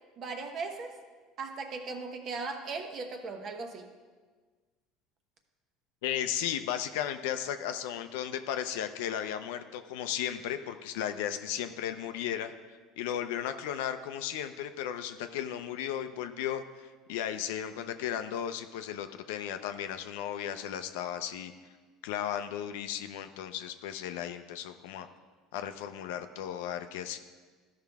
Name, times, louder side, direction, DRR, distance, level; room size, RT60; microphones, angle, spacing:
voice 1, 0.2-0.9 1.4-3.9, right 4 dB, 45° right, 5 dB, 1.1 m, -38 dB
voice 2, 6.0-12.5 13.0-21.5 22.0-25.1 25.5-27.2, left 10 dB, 85° left, 9 dB, 0.5 m, -35 dB
13.0 x 5.6 x 3.5 m, 1.4 s
supercardioid pair, 105°, 0 cm